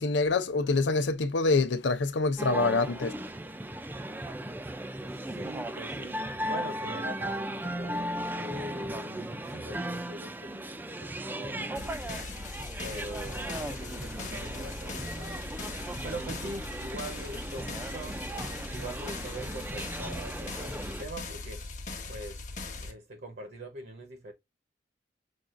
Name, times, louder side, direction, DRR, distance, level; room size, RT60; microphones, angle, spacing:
voice 1, 0.0-3.1, left 3 dB, 75° left, 0.6 m, -26 dB
sound 1, 2.4-21.0, right 1 dB, 10° right, 0.3 m, -37 dB
voice 2, 5.1-12.2 12.8-15.5 16.0-18.2 18.7-21.6 22.1-22.4 22.8-24.3, right 1 dB, 60° right, 0.9 m, -43 dB
sound 2, 11.7-22.9, left 3 dB, 45° left, 1.0 m, -40 dB
6.2 x 2.3 x 2.5 m
head